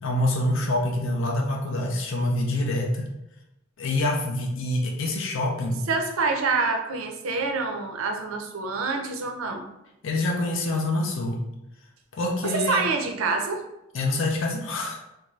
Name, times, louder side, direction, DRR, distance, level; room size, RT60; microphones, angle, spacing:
voice 1, 0.0-3.1 3.8-5.8 10.0-11.4 12.1-12.8 13.9-15.0, left 1 dB, 65° left, 0 dB, 0.5 m, -26 dB
voice 2, 5.9-9.7 12.4-13.6, right 4 dB, 85° right, 4 dB, 0.4 m, -26 dB
2.5 x 2.3 x 3.1 m, 0.90 s
head